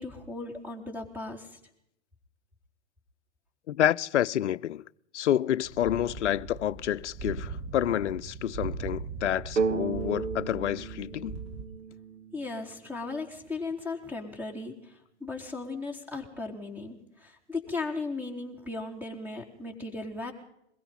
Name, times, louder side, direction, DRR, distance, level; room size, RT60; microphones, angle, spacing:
voice 1, 0.0-1.6 12.3-20.3, left 3 dB, 5° right, 4.4 m, -37 dB
voice 2, 3.7-4.8 5.1-11.4, left 11 dB, 70° left, 0.7 m, -28 dB
sound 1, 5.6-11.7, right 4 dB, 30° right, 3.5 m, -39 dB
sound 2, 9.6-13.2, right 5 dB, 80° right, 2.0 m, -34 dB
22.0 x 22.0 x 5.6 m
hypercardioid pair, 110°, 36 cm